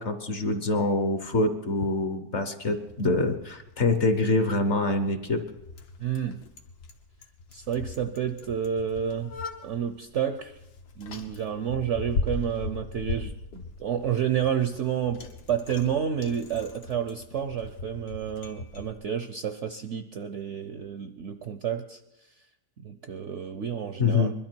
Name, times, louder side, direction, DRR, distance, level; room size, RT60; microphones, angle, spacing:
voice 1, 0.0-5.4 24.0-24.3, left 2 dB, 50° left, 8 dB, 1.1 m, -25 dB
Bicycle, 2.6-18.9, left 3 dB, 70° left, 1.7 m, -39 dB
voice 2, 6.0-6.4 7.5-9.3 9.6-10.5 11.0-22.0 22.8-24.3, right 8 dB, 60° right, 8 dB, 0.8 m, -30 dB
21.5 x 12.5 x 4.5 m, 0.93 s
omnidirectional pair, 1.9 m